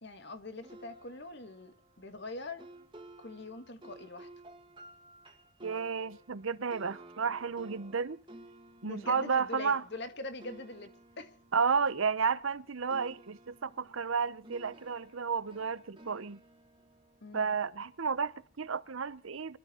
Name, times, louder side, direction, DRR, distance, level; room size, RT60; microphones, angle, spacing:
voice 1, 0.0-2.7 3.2-4.3 8.8-11.3 17.2-17.5, left 2 dB, 55° left, 1.8 m, -43 dB
sound 1, 0.6-12.6 12.9-18.1, right 1 dB, 25° right, 2.0 m, -55 dB
voice 2, 5.6-8.2 8.8-9.8 11.5-16.4 17.3-19.6, right 5 dB, 75° right, 0.8 m, -32 dB
25.0 x 12.5 x 4.3 m
head